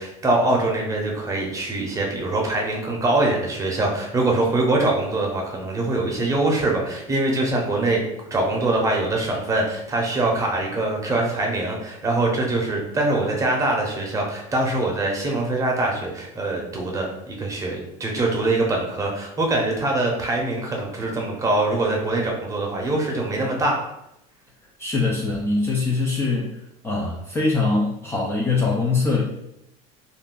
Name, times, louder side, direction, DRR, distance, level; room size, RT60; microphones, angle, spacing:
voice 1, 0.0-8.0 8.3-23.8, right 2 dB, 20° right, -1 dB, 0.7 m, -23 dB
voice 2, 24.8-26.6 26.8-29.2, left 3 dB, 15° left, -3 dB, 0.4 m, -22 dB
2.5 x 2.3 x 3.7 m, 0.83 s
cardioid pair, 135°, 17 cm